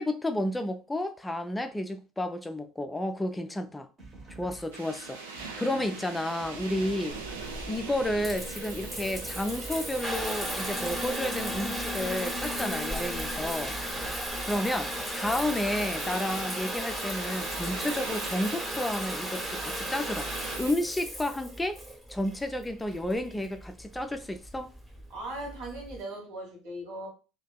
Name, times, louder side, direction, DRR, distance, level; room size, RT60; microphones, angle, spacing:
voice 1, 0.0-3.9 4.4-7.2 7.7-13.7 14.5-20.3 20.6-21.8 22.1-24.7, left 1 dB, 10° left, 0.4 m, -31 dB
sound 1, 4.0-16.0, right 2 dB, 40° right, 0.9 m, -50 dB
sound 2, 4.7-20.7, right 4 dB, 85° right, 0.4 m, -43 dB
Water tap faucet / Bathtub (filling or washing) / Trickle dribble, 7.1-26.0, equal, 10° right, 0.8 m, -35 dB
voice 2, 13.8-14.2 25.1-27.1, right 1 dB, 65° right, 1.1 m, -39 dB
2.5 x 2.2 x 2.2 m
hypercardioid pair, 65°, 0 cm